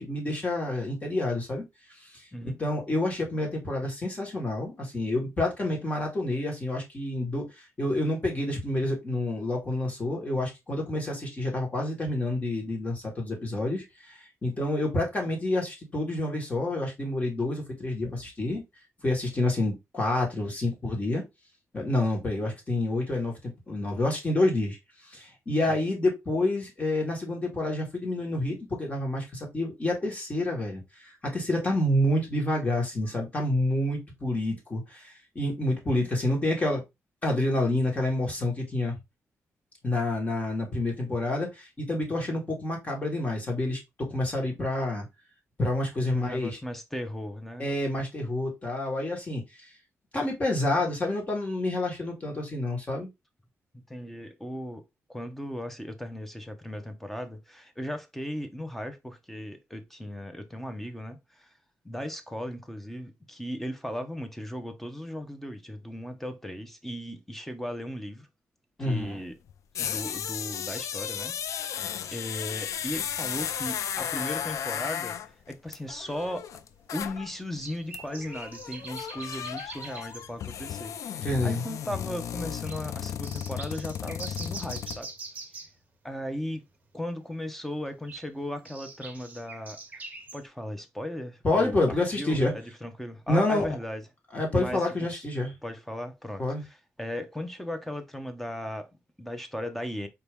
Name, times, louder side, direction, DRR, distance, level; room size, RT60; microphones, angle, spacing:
voice 1, 0.0-1.6 2.1-18.6 19.0-21.2 21.7-24.8 25.0-36.8 37.2-38.9 39.8-45.1 45.6-46.6 47.6-49.7 50.1-53.1 68.8-69.2 81.2-81.6 91.4-92.5 93.3-93.6 94.3-95.5 96.4-96.6, left 1 dB, 25° left, 1.8 m, -28 dB
voice 2, 46.1-47.7 53.7-54.8 55.1-61.5 61.8-68.3 68.8-69.4 69.8-71.7 72.1-76.5 76.9-85.1 86.0-86.6 86.9-89.8 90.3-94.0 94.5-95.2 95.6-100.1, left 1 dB, 5° left, 0.7 m, -37 dB
sound 1, 69.0-69.1 69.5-77.3 77.6-77.7 77.9-85.0, left 9 dB, 80° left, 0.3 m, -35 dB
sound 2, 75.3-75.4 76.2-76.3 77.5-80.3 80.9-81.0 81.3-81.4 81.8-82.1 82.7-82.8 83.2-85.8 87.9-90.4, right 3 dB, 30° right, 1.0 m, -43 dB
4.4 x 2.9 x 3.4 m
wide cardioid pair, 130°, 5 cm